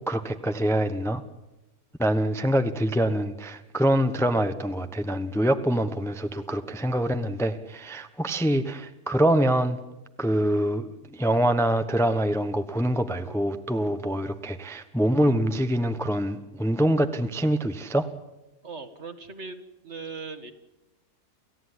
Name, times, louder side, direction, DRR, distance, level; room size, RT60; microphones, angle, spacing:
voice 1, 0.1-1.2 2.0-9.8 10.2-18.1, right 1 dB, ahead, 8 dB, 0.9 m, -25 dB
voice 2, 18.6-20.5, right 4 dB, 45° right, 9 dB, 2.1 m, -39 dB
29.0 x 15.5 x 9.9 m, 0.97 s
omnidirectional pair, 1.7 m